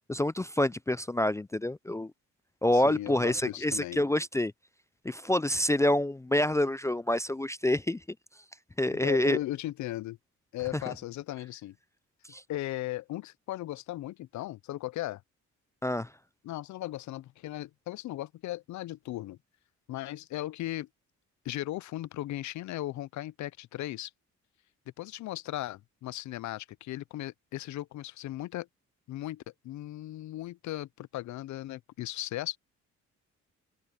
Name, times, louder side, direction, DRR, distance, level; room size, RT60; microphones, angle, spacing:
voice 1, 0.1-2.1 2.6-4.5 5.0-8.0 8.8-9.4 12.3-12.4 15.8-16.1, left 1 dB, 10° left, 0.4 m, -27 dB
voice 2, 2.7-4.0 8.9-10.2 10.5-11.8 12.5-15.2 16.4-19.4 19.9-20.9 21.4-24.1 25.0-28.7 29.1-32.6, left 15 dB, 70° left, 0.6 m, -37 dB
cardioid pair, 90°, 30 cm